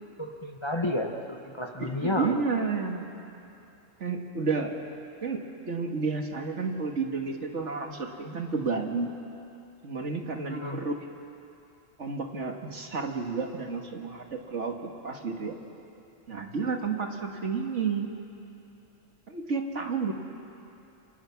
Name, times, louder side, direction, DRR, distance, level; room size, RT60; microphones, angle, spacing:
voice 1, 0.2-2.4 10.5-10.8, left 1 dB, 20° left, 3 dB, 1.2 m, -31 dB
voice 2, 1.8-3.0 4.0-4.7 5.2-9.1 9.8-10.9 12.0-15.5 16.3-18.1 19.3-20.1, right 4 dB, 65° right, 3 dB, 2.1 m, -31 dB
28.0 x 26.5 x 6.0 m, 2.8 s
omnidirectional pair, 1.3 m